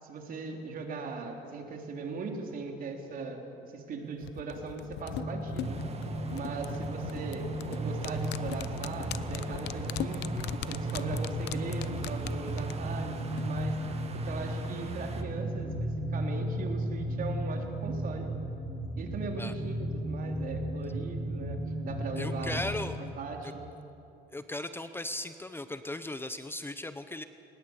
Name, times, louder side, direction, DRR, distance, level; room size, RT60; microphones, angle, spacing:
voice 1, 0.0-5.8 6.3-10.2 10.5-13.8 14.2-18.3 19.0-22.7 23.2-23.7, right 4 dB, 55° right, 2 dB, 3.6 m, -39 dB
sound 1, 4.2-13.6 13.9-14.0, left 13 dB, 80° left, 0.8 m, -40 dB
sound 2, 5.0-23.0, right 1 dB, 20° right, 7.5 m, -35 dB
sound 3, 5.6-15.2, right 5 dB, 40° right, 2.0 m, -44 dB
voice 2, 22.2-23.0 23.4-23.5 24.3-27.2, left 2 dB, 15° left, 11 dB, 0.8 m, -37 dB
21.0 x 20.0 x 8.2 m, 2.8 s
cardioid pair, 110°, 17 cm